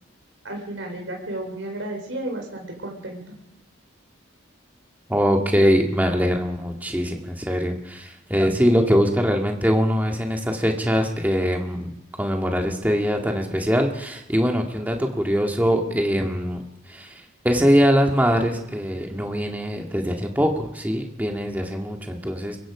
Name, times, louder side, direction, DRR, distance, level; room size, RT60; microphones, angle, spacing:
voice 1, 0.4-3.4, right 1 dB, 75° right, 1 dB, 4.5 m, -33 dB
voice 2, 5.1-11.9 12.2-16.6 16.9-22.6, equal, 10° right, 2 dB, 2.0 m, -22 dB
23.5 x 22.0 x 5.0 m, 0.87 s
head